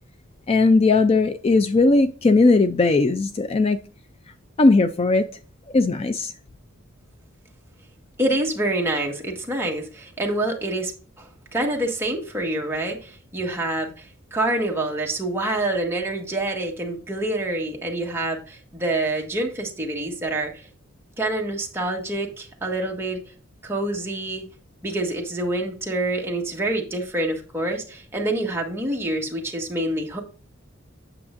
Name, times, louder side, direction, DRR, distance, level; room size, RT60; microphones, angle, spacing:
voice 1, 0.5-3.8 4.6-5.3 5.7-6.3, left 3 dB, 30° left, 0.4 m, -18 dB
voice 2, 8.2-10.9 11.2-14.1 14.3-20.7 21.2-23.2 23.6-24.5 24.8-30.2, right 1 dB, 10° right, 1.4 m, -26 dB
8.6 x 6.8 x 2.5 m
head